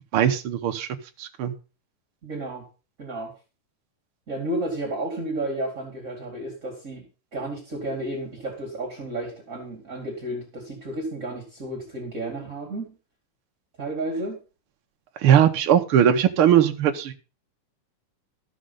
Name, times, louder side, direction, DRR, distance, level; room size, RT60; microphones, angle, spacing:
voice 1, 0.1-0.9 1.2-1.5 15.2-17.1, right 9 dB, 65° right, 6 dB, 1.3 m, -19 dB
voice 2, 2.2-2.7 3.0-3.3 4.3-7.1 7.3-12.9 13.8-14.4, right 1 dB, 25° right, 1 dB, 2.4 m, -32 dB
14.0 x 6.5 x 5.5 m, 0.34 s
omnidirectional pair, 3.8 m